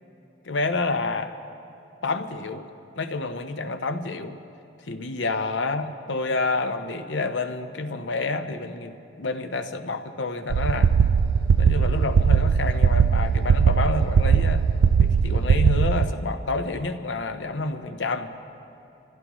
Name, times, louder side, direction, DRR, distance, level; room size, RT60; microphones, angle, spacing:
voice 1, 0.4-1.3 2.0-2.6 3.0-4.4 4.9-10.9 11.6-14.7 15.0-18.3, left 3 dB, 85° left, 8 dB, 1.0 m, -28 dB
sound 1, 10.5-16.1, right 6 dB, 85° right, 0.4 m, -19 dB
27.0 x 15.5 x 3.1 m, 2.9 s
head